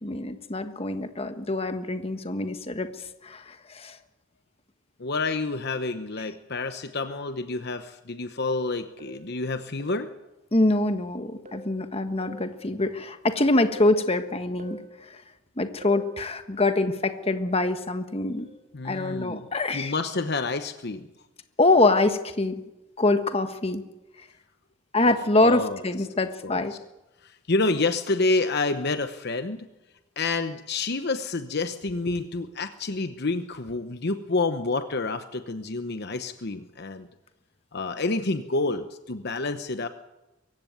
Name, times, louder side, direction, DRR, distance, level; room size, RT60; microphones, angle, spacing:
voice 1, 0.0-2.9 3.2-4.0 10.5-14.8 15.6-18.5 18.8-19.9 21.6-22.6 23.0-23.8 24.9-26.7, left 2 dB, 30° left, 8 dB, 1.4 m, -24 dB
voice 2, 5.0-10.1 18.7-19.5 19.7-21.1 25.1-25.2 25.4-25.8 26.4-26.8 27.2-29.7 30.2-37.1 37.7-39.9, left 3 dB, 55° left, 9 dB, 0.9 m, -28 dB
sound 1, 9.0-9.3 9.8-10.1 11.5-11.8 12.2-12.5 13.7-14.0 14.6-14.9 15.8-16.1 18.4-18.6 19.2-19.4, right 1 dB, 40° right, 2.2 m, -45 dB
23.5 x 15.5 x 9.3 m, 1.0 s
head